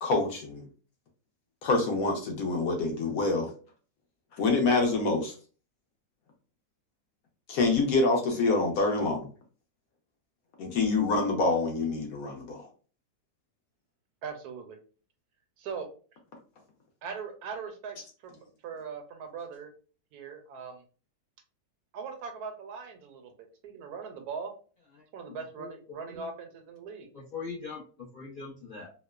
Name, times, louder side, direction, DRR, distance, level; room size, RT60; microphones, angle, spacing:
voice 1, 0.0-0.6 1.6-3.5 4.3-5.3 7.5-9.3 10.6-12.7, left 3 dB, 70° left, 2 dB, 1.1 m, -26 dB
voice 2, 14.2-14.8 15.6-15.9 17.0-18.0 18.2-19.7 20.1-20.8 21.9-24.5 25.1-27.1, right 5 dB, 80° right, 4 dB, 1.1 m, -40 dB
voice 3, 25.0-25.7 26.1-26.3 27.1-28.9, left 4 dB, 50° left, -7 dB, 0.6 m, -42 dB
3.0 x 2.0 x 2.2 m, 0.38 s
omnidirectional pair, 1.6 m